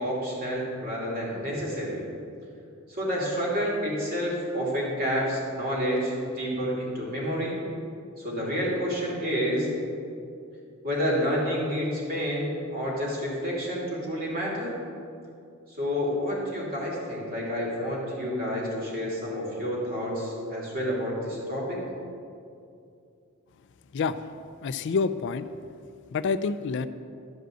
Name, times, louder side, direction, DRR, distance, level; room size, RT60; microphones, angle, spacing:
voice 1, 0.0-2.0 2.9-7.6 8.2-9.7 10.8-14.7 15.7-21.8, equal, 45° right, -4 dB, 2.9 m, -29 dB
voice 2, 23.9-24.3 24.6-25.5 26.1-26.9, left 5 dB, 55° left, 13 dB, 0.3 m, -27 dB
11.0 x 5.1 x 7.8 m, 2.5 s
head